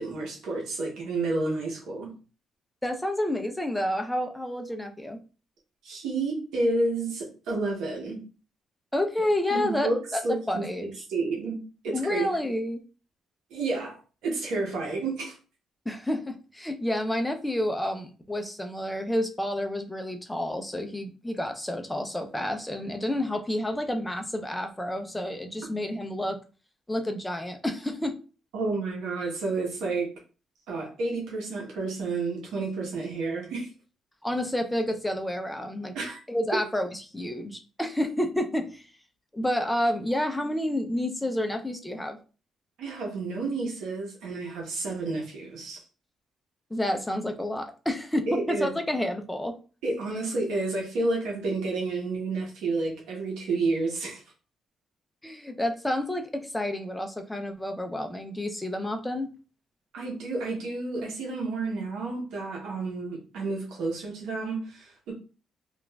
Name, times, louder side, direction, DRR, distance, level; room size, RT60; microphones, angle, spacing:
voice 1, 0.0-2.1 5.8-8.2 9.5-10.0 10.2-11.6 11.8-12.3 13.5-15.4 28.5-30.1 30.7-33.7 35.9-36.2 42.8-45.8 48.3-48.7 49.8-54.2 59.9-65.1, right 3 dB, 85° right, -2 dB, 0.9 m, -30 dB
voice 2, 2.8-5.2 8.9-10.2 10.5-10.9 11.9-12.8 15.9-26.4 26.9-28.2 34.2-36.0 36.3-38.8 39.3-42.2 46.7-49.6 55.2-59.3, left 1 dB, 10° left, 5 dB, 0.4 m, -29 dB
3.0 x 2.3 x 2.3 m, 0.35 s
cardioid pair, 90°, 0 cm